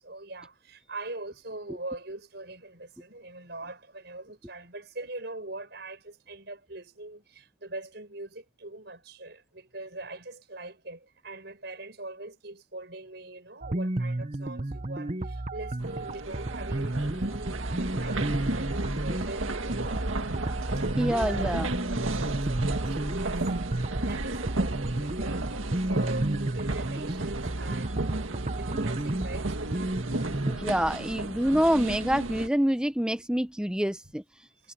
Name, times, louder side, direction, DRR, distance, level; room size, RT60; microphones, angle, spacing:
voice 1, 0.0-20.1 20.6-20.9 21.2-23.6 23.8-30.0, right 2 dB, 55° right, 6.5 m, -42 dB
sound 1, 13.6-30.6, right 1 dB, 35° right, 0.9 m, -32 dB
sound 2, 15.8-32.5, right 2 dB, 90° right, 2.0 m, -33 dB
voice 2, 21.0-21.7 30.5-34.2, equal, 5° right, 0.9 m, -26 dB
head